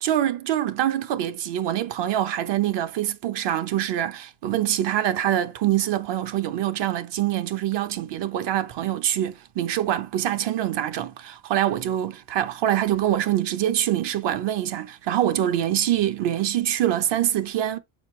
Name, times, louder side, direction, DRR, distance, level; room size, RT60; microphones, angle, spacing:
voice 1, 0.0-17.8, right 11 dB, 65° right, 0.9 m, -25 dB
6.6 x 4.7 x 3.2 m
cardioid pair, 95°, 45 cm